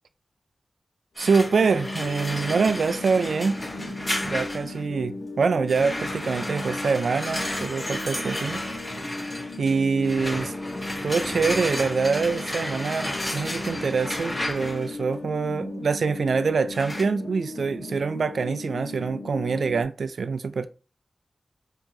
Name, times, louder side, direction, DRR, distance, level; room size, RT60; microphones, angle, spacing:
sound 1, 1.2-4.8 5.7-15.0 16.7-17.0, left 1 dB, 20° left, 1.2 m, -32 dB
voice 1, 1.2-4.0 4.3-8.6 9.6-10.5 11.0-20.7, right 5 dB, 80° right, 0.3 m, -25 dB
sound 2, 1.4-19.8, left 2 dB, 60° left, 1.0 m, -36 dB
4.6 x 2.8 x 2.7 m
wide cardioid pair, 80°, 0 cm